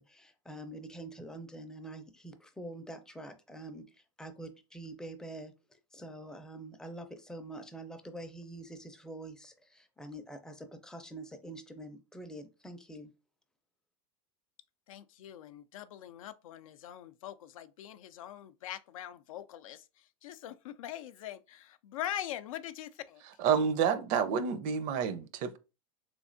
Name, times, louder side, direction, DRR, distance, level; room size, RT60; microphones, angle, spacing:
voice 1, 0.0-13.1, right 1 dB, 5° left, 0.4 m, -46 dB
voice 2, 14.9-23.2, left 11 dB, 90° left, 0.4 m, -43 dB
voice 3, 23.4-25.6, right 7 dB, 50° right, 0.5 m, -29 dB
3.5 x 3.2 x 2.5 m
supercardioid pair, 125°, 17 cm